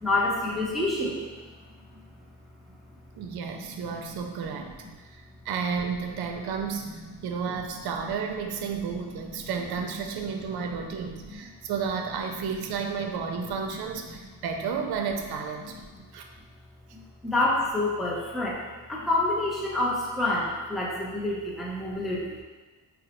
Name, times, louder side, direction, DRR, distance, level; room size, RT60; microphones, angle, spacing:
voice 1, 0.0-1.3 1.9-2.0 3.7-3.8 4.1-4.3 10.5-10.6 11.2-11.4 13.3-13.4 14.1-14.2 16.9-18.6 18.9-22.4, left 2 dB, ahead, -4 dB, 0.5 m, -28 dB
voice 2, 3.1-4.7 5.0-15.7 16.1-16.2, right 6 dB, 60° right, 4 dB, 0.5 m, -32 dB
3.8 x 2.1 x 2.8 m, 1.3 s
cardioid pair, 90°, 43 cm